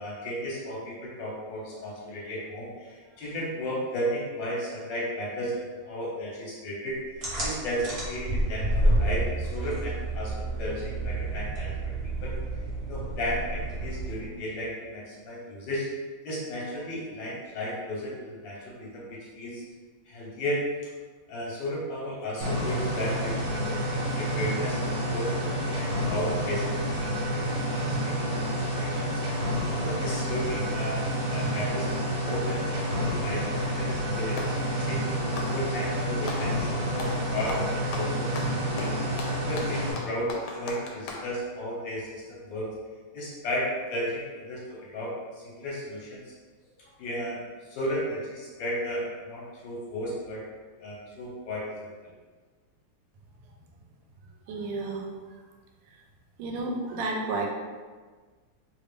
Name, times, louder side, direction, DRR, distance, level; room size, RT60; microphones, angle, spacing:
voice 1, 0.0-15.8 16.2-19.6 20.1-20.6 21.3-24.8 25.1-28.2 28.4-35.0 35.4-39.1 39.5-42.7 43.1-46.3 46.8-50.4 50.8-52.1, equal, 65° left, -5 dB, 1.5 m, -34 dB
sound 1, 7.2-14.4, right 1 dB, 45° right, 0.8 m, -29 dB
sound 2, 22.4-39.9, equal, 65° right, 1.5 m, -29 dB
Clapping, 34.4-34.6 35.2-36.5 37.0-37.2 37.5-41.3, left 3 dB, 85° left, 1.4 m, -38 dB
voice 2, 54.5-55.1 56.4-57.5, right 3 dB, 80° right, 1 dB, 1.4 m, -31 dB
3.5 x 2.4 x 3.3 m, 1.4 s
omnidirectional pair, 2.3 m